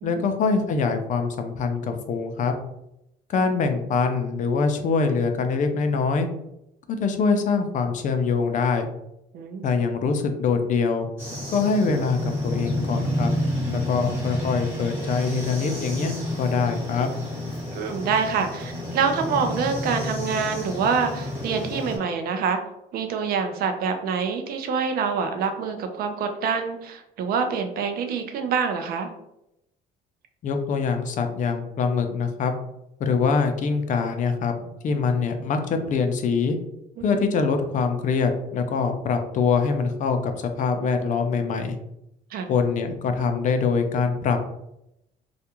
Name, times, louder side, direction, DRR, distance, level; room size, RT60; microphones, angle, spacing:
voice 1, 0.0-2.5 3.3-6.3 6.9-8.9 9.6-11.1 11.5-13.3 13.7-17.1 30.4-32.6 33.0-36.6 37.0-40.3 40.6-41.8 42.5-44.4, left 5 dB, 50° left, 6 dB, 0.4 m, -24 dB
voice 2, 9.3-9.7 17.7-22.6 22.9-29.1 37.0-37.2 42.3-42.5, right 5 dB, 65° right, 6 dB, 0.5 m, -26 dB
sound 1, 11.2-22.0, left 1 dB, 15° right, 1.1 m, -30 dB
2.3 x 2.2 x 2.9 m, 0.83 s
cardioid pair, 110°, 17 cm